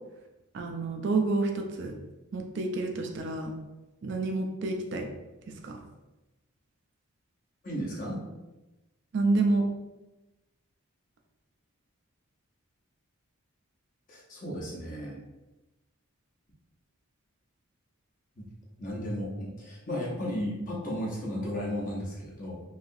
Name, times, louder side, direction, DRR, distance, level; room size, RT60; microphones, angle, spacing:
voice 1, 0.5-1.9 2.3-3.5 4.0-5.1 5.5-5.8 9.1-9.7, right 3 dB, 55° right, 3 dB, 0.4 m, -28 dB
voice 2, 7.6-8.3 14.1-15.2 18.4-18.5 18.8-22.6, equal, 40° left, -4 dB, 0.8 m, -34 dB
3.2 x 2.7 x 2.6 m, 1.0 s
head